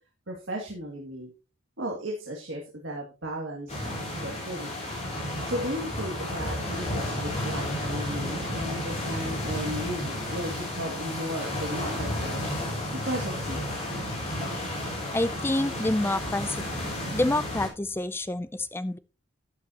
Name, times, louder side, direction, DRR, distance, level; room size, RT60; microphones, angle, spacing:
voice 1, 0.3-1.3 1.8-4.0 4.2-4.9 5.5-12.5 13.0-13.8, equal, 60° right, 0 dB, 2.2 m, -35 dB
sound 1, 3.7-17.7, left 1 dB, 30° left, 5.0 m, -32 dB
voice 2, 15.1-16.6 17.1-19.0, left 1 dB, 10° left, 14 dB, 0.4 m, -27 dB
12.0 x 9.7 x 2.9 m, 0.31 s
head